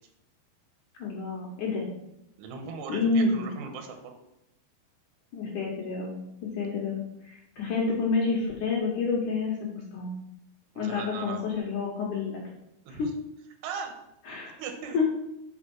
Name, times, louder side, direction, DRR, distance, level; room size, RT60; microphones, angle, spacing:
voice 1, 1.0-1.9 2.9-3.5 5.3-10.1 10.8-12.4 12.9-13.1 14.3-14.6 14.9-15.1, left 4 dB, 75° left, -4 dB, 1.9 m, -29 dB
voice 2, 2.4-4.2 10.8-11.4 12.8-13.1 13.6-13.9 14.6-15.0, right 5 dB, 75° right, 4 dB, 2.8 m, -38 dB
6.2 x 5.6 x 6.0 m, 0.83 s
omnidirectional pair, 5.4 m